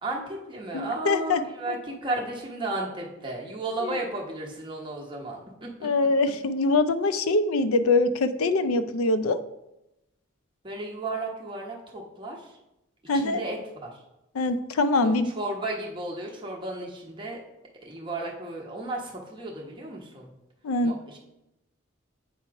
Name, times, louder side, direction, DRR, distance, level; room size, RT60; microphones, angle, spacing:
voice 1, 0.0-5.9 10.6-12.6 13.1-14.0 15.0-17.4 17.8-20.3 20.8-21.2, right 2 dB, 25° right, -2 dB, 1.0 m, -34 dB
voice 2, 0.7-1.4 3.8-4.0 5.8-9.4 13.1-13.4 14.4-15.3 20.6-20.9, left 3 dB, 85° left, 11 dB, 0.5 m, -23 dB
8.6 x 3.0 x 4.7 m, 0.92 s
head